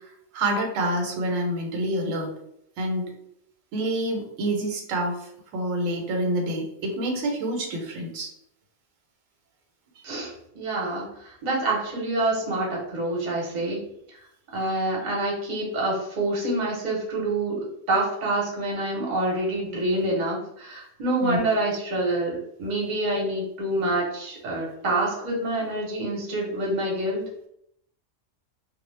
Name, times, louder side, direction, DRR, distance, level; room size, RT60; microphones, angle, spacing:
voice 1, 0.3-2.3 2.8-3.0 3.7-5.1 5.5-8.3 21.2-21.6, right 1 dB, 85° right, 1 dB, 1.0 m, -27 dB
voice 2, 10.0-13.8 14.5-27.2, right 2 dB, 40° right, -3 dB, 0.8 m, -27 dB
2.1 x 2.0 x 3.1 m, 0.73 s
omnidirectional pair, 1.3 m